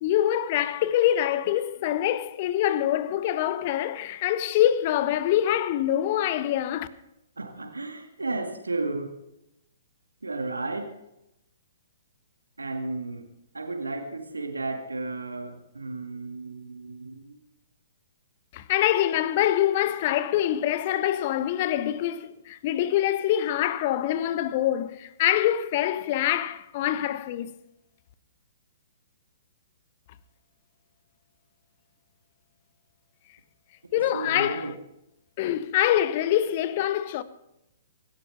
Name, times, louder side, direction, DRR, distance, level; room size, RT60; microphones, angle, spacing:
voice 1, 0.0-6.9 18.5-27.5 33.9-34.7 35.4-37.2, left 12 dB, 40° left, 1.0 m, -25 dB
voice 2, 7.4-9.2 10.2-10.9 12.6-13.3 13.5-17.4 33.9-34.7, right 3 dB, 75° right, 2.1 m, -33 dB
24.5 x 13.0 x 3.4 m
figure-of-eight pair, 120°, 0 cm